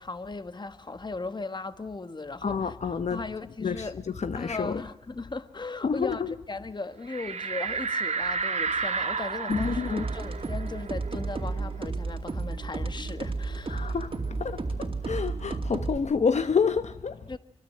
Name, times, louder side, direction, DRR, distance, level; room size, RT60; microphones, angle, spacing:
voice 1, 0.0-2.7 3.1-4.0 4.3-6.2 6.5-14.0 17.3-17.4, left 3 dB, 40° left, 1.5 m, -37 dB
voice 2, 2.4-3.3 3.6-4.8 5.8-6.4 9.5-10.1 13.7-17.4, left 5 dB, 70° left, 1.0 m, -29 dB
sound 1, 7.1-12.3 12.6-12.7 13.1-14.7, right 5 dB, 70° right, 1.6 m, -32 dB
sound 2, 9.5-16.0, right 3 dB, 50° right, 2.6 m, -32 dB
24.5 x 24.0 x 7.7 m
wide cardioid pair, 80°, 12 cm